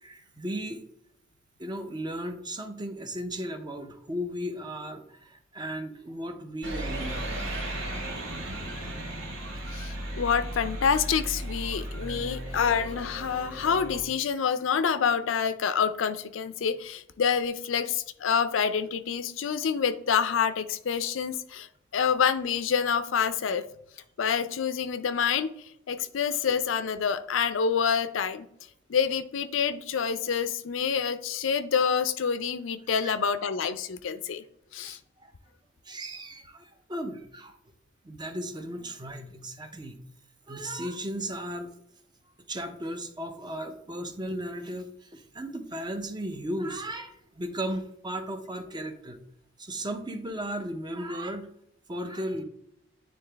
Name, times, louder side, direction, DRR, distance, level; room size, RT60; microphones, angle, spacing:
voice 1, 0.0-0.8 1.6-7.3 33.0-33.1 34.8-35.3 35.8-37.6 38.0-40.0 40.5-41.7 42.5-49.2 49.6-51.5 51.9-52.4, right 1 dB, 25° right, 7 dB, 0.7 m, -36 dB
sound 1, 6.6-14.0, right 1 dB, 75° right, 1.5 m, -35 dB
voice 2, 9.7-21.7 21.9-23.6 24.2-25.5 25.9-28.5 28.9-34.4 34.7-35.0, left 6 dB, 75° left, 12 dB, 0.5 m, -27 dB
9.4 x 3.7 x 3.4 m, 0.76 s
head